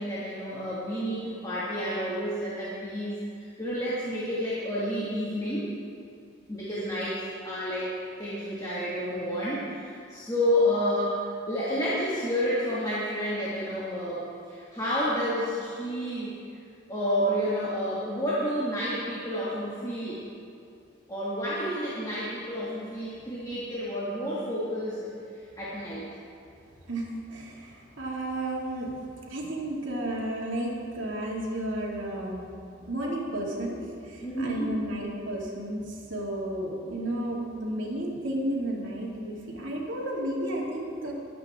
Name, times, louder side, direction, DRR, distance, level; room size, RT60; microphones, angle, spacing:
voice 1, 0.0-5.7 6.5-16.4 16.9-20.2 21.1-26.0 34.2-34.7, equal, 20° left, -9 dB, 2.1 m, -30 dB
voice 2, 26.9-29.0 29.3-32.4 32.9-41.1, right 1 dB, 80° right, -3 dB, 2.5 m, -32 dB
23.5 x 8.7 x 3.7 m, 2.5 s
head